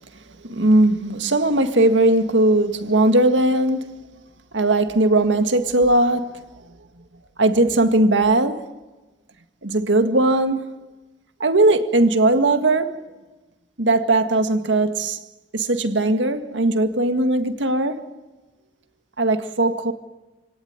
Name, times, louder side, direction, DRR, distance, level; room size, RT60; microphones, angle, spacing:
voice 1, 0.4-3.9 4.5-6.4 7.4-8.6 9.6-10.8 11.4-13.0 13.8-15.2 15.5-18.0 19.2-19.9, right 2 dB, 90° right, 1.9 m, -19 dB
28.5 x 18.0 x 9.6 m
head